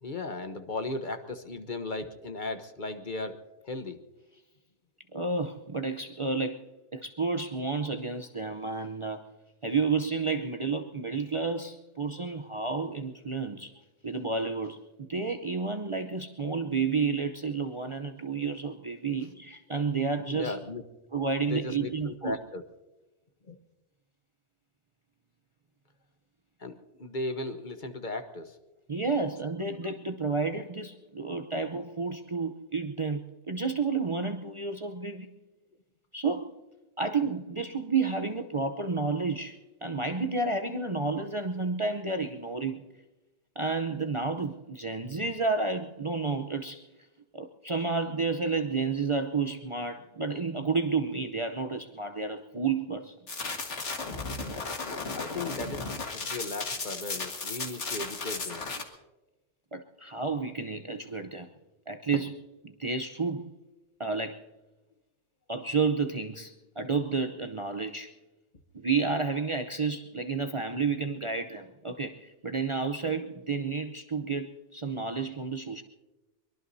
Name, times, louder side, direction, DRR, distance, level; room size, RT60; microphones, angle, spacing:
voice 1, 0.0-3.4 3.7-4.0 20.3-20.8 21.5-22.6 23.5-23.6 26.6-28.5 54.8-58.7, left 2 dB, 45° left, 8 dB, 1.1 m, -36 dB
voice 2, 5.1-9.2 9.6-13.7 14.0-20.6 21.1-22.4 28.9-33.2 33.5-35.3 36.1-36.6 37.0-42.8 43.6-46.9 47.3-53.2 59.7-61.5 61.9-63.5 64.0-64.4 65.5-68.1 68.7-75.8, right 4 dB, 30° right, 5 dB, 0.7 m, -31 dB
sound 1, 53.3-58.8, left 3 dB, 80° left, 2.1 m, -35 dB
23.5 x 22.0 x 2.7 m, 1.1 s
omnidirectional pair, 1.2 m